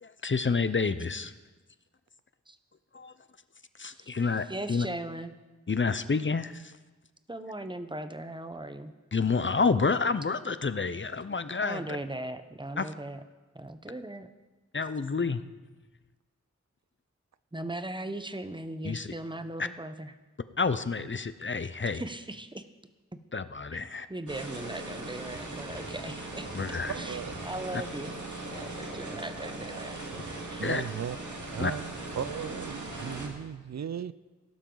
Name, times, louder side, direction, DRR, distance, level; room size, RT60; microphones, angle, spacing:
voice 1, 0.0-1.3 2.9-3.1 3.8-4.9 5.7-6.7 9.1-11.8 12.8-12.9 14.7-15.4 18.8-19.1 20.6-22.0 23.3-24.1 26.5-26.9 30.6-30.8 31.6-31.7, left 4 dB, 40° left, 13 dB, 0.6 m, -29 dB
voice 2, 3.9-5.4 7.3-8.9 11.6-13.2 13.5-14.3 17.5-20.1 21.9-22.6 23.1-23.2 23.7-23.8 24.1-28.2 28.5-30.0 30.4-30.6, right 1 dB, 15° right, 10 dB, 0.9 m, -39 dB
sound 1, 24.3-33.3, right 2 dB, 90° right, 2.2 m, -39 dB
voice 3, 26.9-27.3 30.1-30.2 30.6-31.2 31.5-34.1, right 8 dB, 65° right, 16 dB, 0.4 m, -36 dB
17.5 x 12.0 x 3.9 m, 1.2 s
wide cardioid pair, 55°, 29 cm